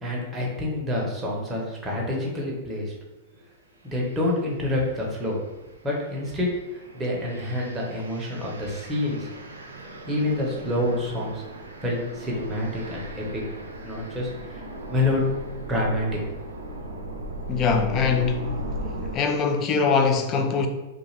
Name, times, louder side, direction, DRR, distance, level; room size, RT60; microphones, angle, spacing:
voice 1, 0.0-2.9 3.8-5.4 5.8-6.5 6.7-9.3 10.1-11.4 11.8-13.4 13.8-14.6 14.9-15.2 15.6-16.1, left 1 dB, 15° right, 0.9 m, -27 dB
sound 1, 3.9-4.2 4.7-19.2, right 1 dB, 90° right, 0.4 m, -38 dB
voice 2, 17.5-18.6 19.1-20.7, left 5 dB, 35° left, 0.4 m, -22 dB
2.4 x 2.4 x 3.2 m
hypercardioid pair, 105°, 0 cm